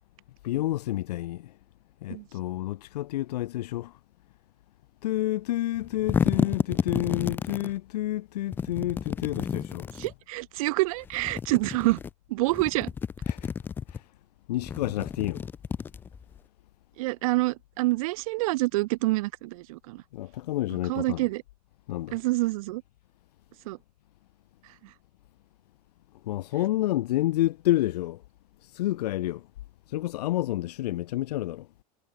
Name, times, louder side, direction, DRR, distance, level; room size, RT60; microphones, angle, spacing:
voice 1, 0.4-1.5 2.0-4.0 5.0-9.9 13.3-13.5 13.9-14.0 14.5-15.4 20.1-21.2 21.9-22.2 26.2-28.2 28.6-29.5 29.9-31.7, left 15 dB, 80° left, 1.4 m, -29 dB
sound 1, 5.8-7.7 8.5-10.1 11.1-12.1 12.5-14.0 14.6-16.4, left 6 dB, 10° left, 0.3 m, -31 dB
voice 2, 10.0-12.0 12.3-12.9 17.0-20.0 20.9-21.4 22.1-22.8 23.7-23.8, right 20 dB, 60° right, 1.1 m, -27 dB
supercardioid pair, 160°, 20 cm